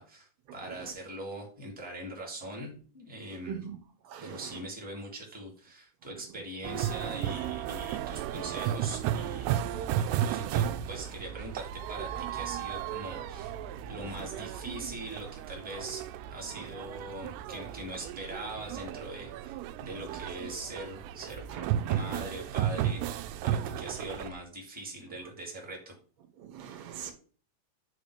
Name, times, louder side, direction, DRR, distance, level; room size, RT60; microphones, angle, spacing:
voice 1, 0.0-3.7 4.2-13.5 13.8-21.4 21.8-23.1 23.4-25.9, right 1 dB, 5° right, 1.6 m, -42 dB
voice 2, 4.1-4.4 16.5-16.7 21.5-21.7 26.4-27.1, right 8 dB, 55° right, 2.1 m, -41 dB
sound 1, 6.6-24.3, right 11 dB, 80° right, 2.5 m, -34 dB
9.6 x 4.0 x 5.0 m
omnidirectional pair, 4.9 m